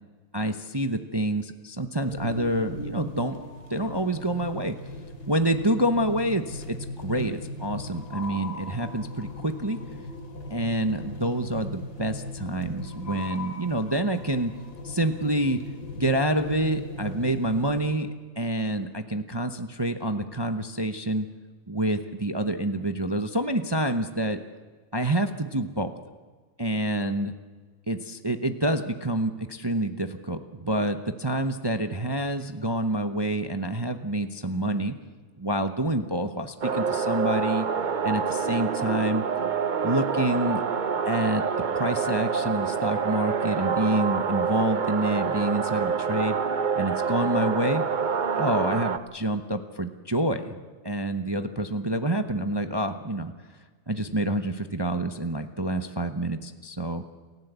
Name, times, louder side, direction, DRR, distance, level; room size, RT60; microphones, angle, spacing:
voice 1, 0.3-3.4 3.7-4.8 5.3-9.8 10.5-14.5 14.8-15.6 16.0-18.1 18.4-21.3 21.7-24.4 24.9-26.0 26.6-27.3 27.9-34.9 35.4-37.7 38.0-39.2 39.8-40.6 41.0-41.4 41.7-46.4 46.8-47.9 48.3-50.6 50.8-53.3 53.9-57.0, right 1 dB, 25° right, 8 dB, 0.5 m, -27 dB
sound 1, 2.0-18.0, left 1 dB, 55° left, 3.3 m, -38 dB
sound 2, 36.6-49.0, right 6 dB, 90° right, 0.4 m, -27 dB
28.5 x 15.5 x 8.2 m, 1.4 s
omnidirectional pair, 2.1 m